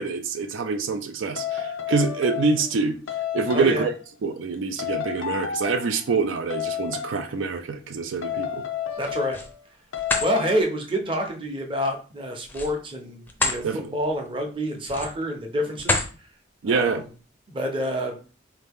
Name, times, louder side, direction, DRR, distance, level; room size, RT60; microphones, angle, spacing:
voice 1, 0.0-3.0 3.3-3.9 4.2-8.6 13.6-14.0 16.6-17.0, right 4 dB, 80° right, 0.4 m, -25 dB
sound 1, 1.4-2.8 3.1-4.0 4.8-6.0 6.5-7.2 8.2-9.6 9.9-10.6, left 9 dB, 80° left, 0.4 m, -31 dB
voice 2, 3.5-3.9 9.0-9.4 10.2-16.0 16.7-17.0 17.5-18.2, equal, 25° right, 0.7 m, -27 dB
sound 2, 8.9-9.5 9.9-10.3 12.4-13.6 14.1-14.3 14.8-15.3 15.8-16.1, left 3 dB, 10° left, 0.5 m, -27 dB
4.0 x 2.8 x 3.5 m
head